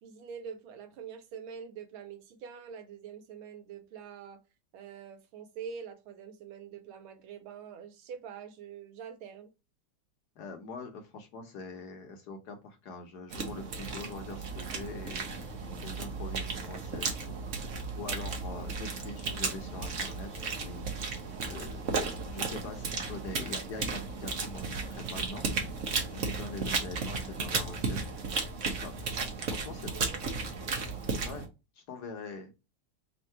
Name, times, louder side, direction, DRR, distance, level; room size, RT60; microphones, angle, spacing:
voice 1, 0.0-4.4 4.7-9.5 29.9-30.8, right 7 dB, 85° right, 1.6 m, -45 dB
voice 2, 10.4-17.6 18.0-20.9 21.2-21.9 22.3-25.4 25.8-28.0 28.6-29.1 29.5-30.1 31.2-31.5 31.8-32.5, left 3 dB, 60° left, 1.2 m, -44 dB
sound 1, 13.3-31.5, right 4 dB, 55° right, 0.9 m, -35 dB
3.6 x 2.6 x 4.3 m
omnidirectional pair, 2.2 m